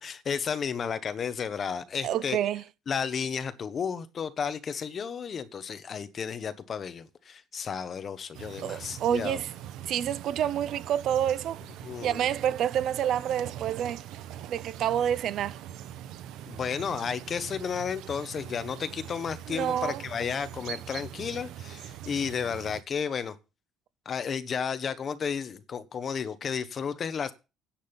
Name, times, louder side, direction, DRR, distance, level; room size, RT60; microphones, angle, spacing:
voice 1, 0.0-2.4 2.9-9.4 11.8-12.3 16.4-23.4 24.0-27.3, left 6 dB, 30° left, 1.1 m, -33 dB
voice 2, 2.0-2.6 8.6-9.5 9.8-11.6 12.0-14.1 14.5-15.6 19.5-20.0, right 10 dB, 50° right, 0.6 m, -28 dB
sound 1, 8.3-22.8, right 11 dB, 75° right, 0.9 m, -42 dB
10.0 x 7.7 x 7.0 m
cardioid pair, 160°, 0 cm